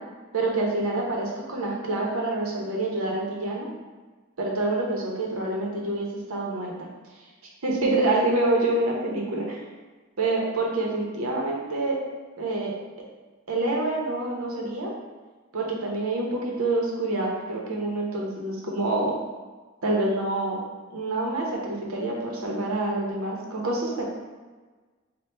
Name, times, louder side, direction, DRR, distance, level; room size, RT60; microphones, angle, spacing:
voice 1, 0.3-3.7 4.4-6.9 7.6-9.6 10.2-12.0 12.4-12.7 13.5-14.9 15.5-19.1 19.8-20.6 20.9-24.0, right 2 dB, 85° right, -2 dB, 0.8 m, -27 dB
4.4 x 2.3 x 3.3 m, 1.3 s
head